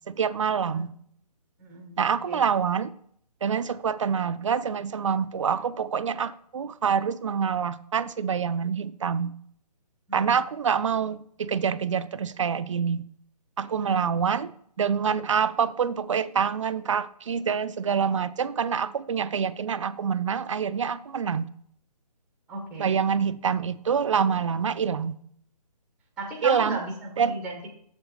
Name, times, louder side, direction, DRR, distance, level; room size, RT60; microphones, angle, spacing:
voice 1, 0.1-0.9 2.0-2.9 3.4-9.3 10.1-13.0 13.6-14.5 14.8-21.5 22.8-25.1 26.4-26.8 27.2-27.3, right 7 dB, 50° right, 14 dB, 0.4 m, -26 dB
voice 2, 1.6-2.4 10.1-10.4 13.8-14.1 22.5-23.0 26.2-27.7, right 2 dB, 5° right, 1 dB, 0.7 m, -36 dB
7.3 x 5.0 x 4.9 m, 0.65 s
hypercardioid pair, 160°, 21 cm